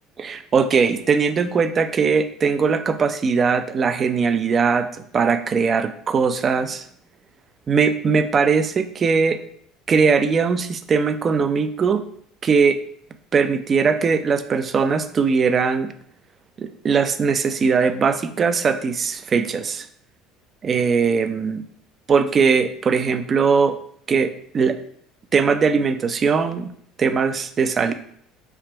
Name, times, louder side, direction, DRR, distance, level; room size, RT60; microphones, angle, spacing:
voice 1, 0.2-4.9 5.1-6.9 7.7-9.4 9.9-12.0 12.4-12.8 13.3-15.9 16.6-19.9 20.6-21.6 22.1-23.8 24.1-24.8 25.3-26.7 27.0-27.9, right 5 dB, 30° right, 9 dB, 0.3 m, -20 dB
3.4 x 2.9 x 4.4 m, 0.65 s
cardioid pair, 140°, 0 cm